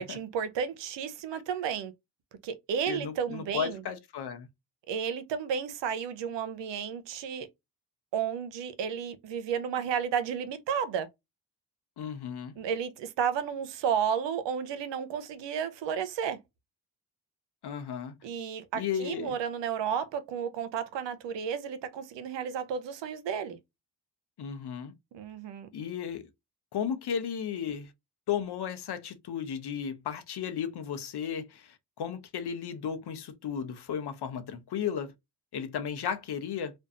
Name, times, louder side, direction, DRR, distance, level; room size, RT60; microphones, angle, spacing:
voice 1, 0.0-1.9 2.4-3.8 4.9-7.5 8.1-11.1 12.6-16.4 18.2-23.6 25.1-25.7, right 7 dB, 75° right, 0.6 m, -32 dB
voice 2, 2.9-4.5 12.0-12.6 17.6-18.1 18.7-19.4 24.4-24.9 25.7-26.3 26.7-27.9 28.3-35.1 35.5-36.7, left 8 dB, 60° left, 0.7 m, -34 dB
2.5 x 2.2 x 2.5 m
supercardioid pair, 40°, 44 cm